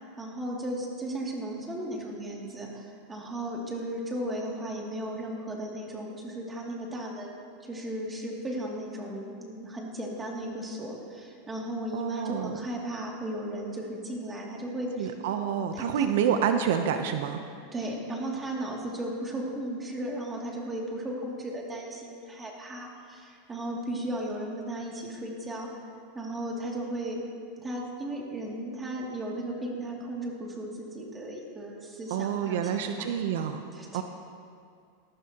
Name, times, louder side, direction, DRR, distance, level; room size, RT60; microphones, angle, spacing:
voice 1, 0.2-15.1 15.7-16.1 17.7-25.8 26.1-27.2 27.6-33.1 33.7-34.0, right 1 dB, 15° right, -2 dB, 2.6 m, -35 dB
voice 2, 11.9-12.6 15.0-17.4 32.1-33.7 33.9-34.0, right 8 dB, 70° right, 7 dB, 0.7 m, -28 dB
19.5 x 14.0 x 3.0 m, 2.3 s
supercardioid pair, 140°, 0 cm